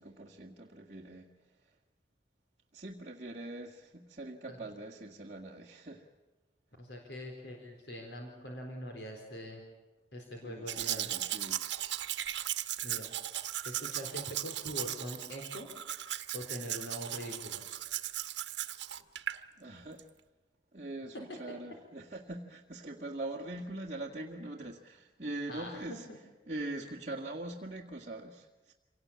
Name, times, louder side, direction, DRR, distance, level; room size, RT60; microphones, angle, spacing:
voice 1, 0.0-1.8 2.7-6.1 10.4-11.6 19.6-20.1 20.7-26.1 26.5-28.7, right 2 dB, 40° right, -3 dB, 1.8 m, -42 dB
voice 2, 6.8-9.6 10.1-11.1 12.8-13.1 13.6-15.7 16.3-17.6 25.5-25.7 26.1-26.2, equal, 75° left, 1 dB, 4.0 m, -43 dB
Domestic sounds home sounds, 10.7-19.4 20.0-20.1, right 12 dB, 85° right, 1.1 m, -37 dB
27.0 x 18.5 x 8.6 m, 1.2 s
head